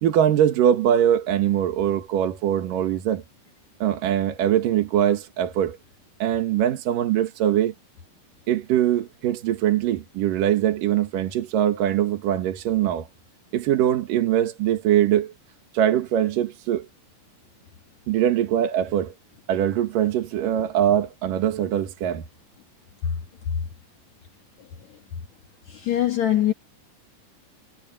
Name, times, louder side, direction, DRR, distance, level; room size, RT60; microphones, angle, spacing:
voice 1, 0.0-3.2 3.8-5.8 6.2-7.7 8.5-13.1 13.5-15.3 15.7-16.9 18.1-19.1 19.5-22.2, right 10 dB, 80° right, 3.2 m, -22 dB
voice 2, 25.7-26.5, left 12 dB, 60° left, 2.6 m, -22 dB
omnidirectional pair, 3.8 m